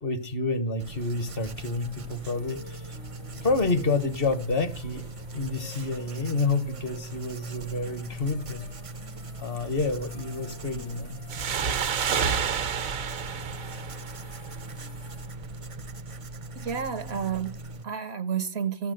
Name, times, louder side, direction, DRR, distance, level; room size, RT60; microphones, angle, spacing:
voice 1, 0.0-2.9 3.4-8.7 9.4-11.2, left 3 dB, 45° left, 1.2 m, -29 dB
Writing, 0.8-17.8, right 2 dB, 35° right, 0.5 m, -40 dB
sound 1, 1.0-15.3, left 1 dB, 70° left, 4.9 m, -51 dB
sound 2, 11.3-14.7, right 7 dB, 85° right, 1.4 m, -29 dB
voice 2, 16.6-18.9, right 7 dB, 60° right, 0.9 m, -31 dB
15.0 x 7.0 x 6.5 m
omnidirectional pair, 1.4 m